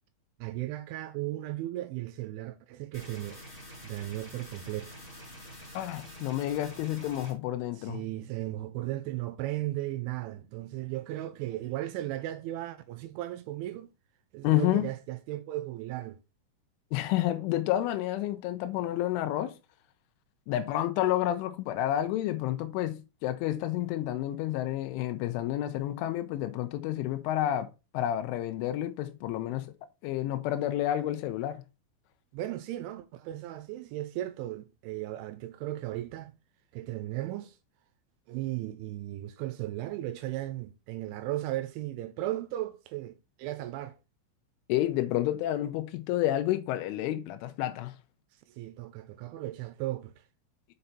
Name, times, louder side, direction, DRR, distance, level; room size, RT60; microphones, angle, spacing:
voice 1, 0.4-3.4 3.8-5.0 7.8-13.9 14.3-16.2 32.3-36.3 36.7-37.6 38.3-44.0 48.5-50.2, right 15 dB, 80° right, 2.8 m, -36 dB
sound 1, 2.9-7.3, equal, 15° left, 2.5 m, -47 dB
voice 2, 5.7-8.0 14.4-14.9 16.9-19.5 20.5-29.7 30.0-31.6 44.7-47.9, left 13 dB, 85° left, 3.1 m, -30 dB
6.7 x 5.6 x 4.1 m
omnidirectional pair, 5.8 m